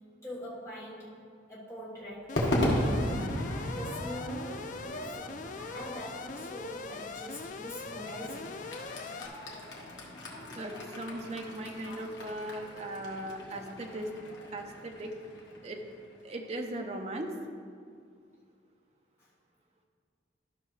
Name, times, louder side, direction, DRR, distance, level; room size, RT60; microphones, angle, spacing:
voice 1, 0.2-1.2 1.5-8.6 19.2-19.3, equal, 15° left, -8 dB, 1.6 m, -43 dB
Alarm, 2.3-9.3, left 4 dB, 40° left, 0.3 m, -42 dB
Crowd / Fireworks, 2.4-16.8, left 1 dB, 75° left, 1.5 m, -37 dB
voice 2, 10.6-14.1 14.5-15.1 15.6-15.8 16.2-17.3, right 1 dB, 35° right, 2 dB, 0.7 m, -38 dB
13.0 x 5.7 x 3.2 m, 2.2 s
head